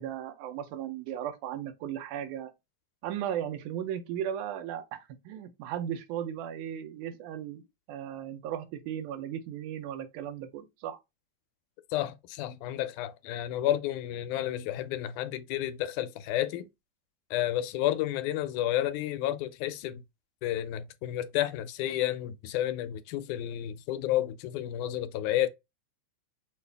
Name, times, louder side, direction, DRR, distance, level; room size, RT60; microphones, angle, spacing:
voice 1, 0.0-2.5 3.0-7.6 7.9-11.0, right 10 dB, 85° right, 2.2 m, -36 dB
voice 2, 11.9-16.7 17.3-20.0 20.4-25.5, left 13 dB, 85° left, 2.0 m, -31 dB
6.2 x 2.5 x 3.3 m
omnidirectional pair, 3.5 m